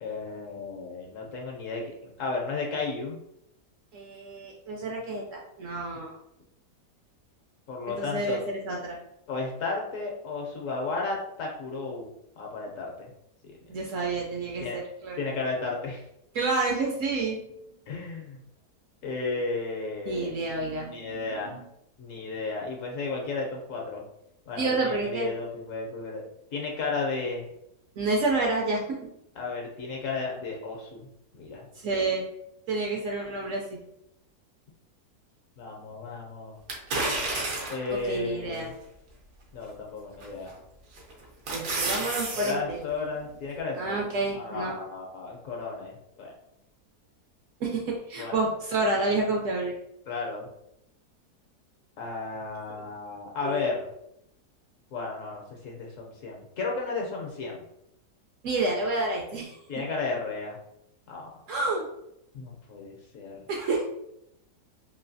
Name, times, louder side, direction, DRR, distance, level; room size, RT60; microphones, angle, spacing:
voice 1, 0.0-3.2 7.7-8.4 9.3-12.1 12.4-13.1 14.6-14.8 15.2-16.0 17.9-18.4 19.0-20.3 20.9-21.6 22.0-24.0 24.5-26.2 26.5-27.5 29.4-31.0 31.3-31.7 35.6-36.6 37.7-38.7 39.5-40.5 42.3-44.0 44.3-46.3 48.2-48.4 50.1-50.5 52.0-53.9 54.9-57.6 59.7-60.6 61.1-61.3 62.3-63.3, left 3 dB, 65° left, 0 dB, 0.9 m, -33 dB
voice 2, 3.9-6.2 8.0-9.0 13.7-15.2 16.3-17.4 20.1-21.7 24.6-25.3 28.0-28.8 31.8-32.2 32.7-33.8 37.9-38.7 41.5-42.8 43.8-44.8 47.6-49.7 53.4-53.7 58.4-59.6 61.5-61.8 63.5-63.9, right 2 dB, 70° right, -1 dB, 0.8 m, -29 dB
sound 1, 36.7-37.9 38.5-38.6 40.2-40.5 41.0-42.5 42.9-43.0, right 2 dB, 85° right, 1.3 m, -30 dB
3.1 x 2.6 x 2.6 m, 0.78 s
omnidirectional pair, 1.7 m